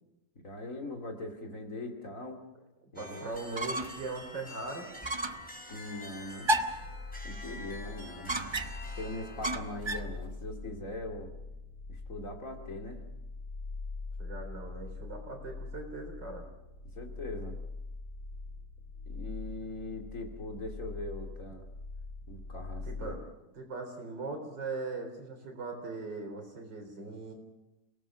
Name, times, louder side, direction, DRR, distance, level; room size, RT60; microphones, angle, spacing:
voice 1, 0.4-2.4 2.9-3.3 5.7-6.6 7.2-8.4 9.0-11.3 11.9-13.0 16.9-17.6 19.1-21.6 22.3-23.2, left 1 dB, 45° left, 4 dB, 2.9 m, -41 dB
voice 2, 2.8-4.9 14.2-16.4 22.9-23.2 23.5-27.3, right 3 dB, 75° right, 4 dB, 4.5 m, -40 dB
sound 1, 3.0-9.6, left 1 dB, 5° left, 3.6 m, -47 dB
sound 2, 3.3-4.1 4.4-4.5 5.0-5.5 6.4-6.9 8.3-8.9 9.4-10.1, right 1 dB, 30° right, 0.5 m, -32 dB
sound 3, 6.7-23.2, left 3 dB, 80° left, 5.3 m, -43 dB
29.0 x 18.5 x 6.2 m, 0.94 s
omnidirectional pair, 1.9 m